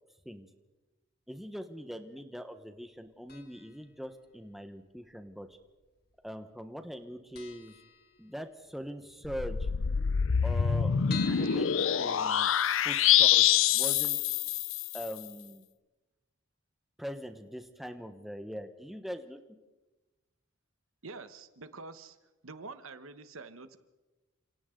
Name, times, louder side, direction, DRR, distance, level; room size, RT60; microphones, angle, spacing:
voice 1, 1.3-5.5 6.2-7.7 8.2-9.7 10.4-12.5 12.8-14.2 14.9-15.6 17.0-19.4, equal, ahead, 7 dB, 1.2 m, -42 dB
sound 1, 3.3-3.8 4.1-4.2 5.1-5.8 6.1-6.3 6.5-6.6 7.0-7.1 7.3-8.7 9.0-9.1 9.4-9.5 9.7-9.8 10.3-12.9 13.4-13.5 13.8-13.9, left 8 dB, 45° left, 2.5 m, -46 dB
sound 2, 9.2-15.1, left 9 dB, 75° left, 0.6 m, -26 dB
voice 2, 21.0-22.2 22.4-23.8, right 3 dB, 80° right, 11 dB, 1.3 m, -46 dB
29.5 x 27.0 x 3.9 m, 1.1 s
head